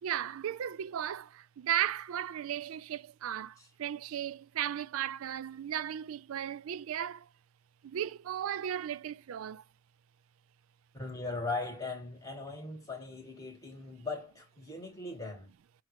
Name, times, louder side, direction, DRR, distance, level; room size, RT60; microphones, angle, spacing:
voice 1, 0.0-7.3 7.8-9.6, right 10 dB, 75° right, 0.3 m, -35 dB
voice 2, 10.9-15.5, left 3 dB, 15° left, 1.3 m, -39 dB
5.8 x 2.4 x 3.1 m
head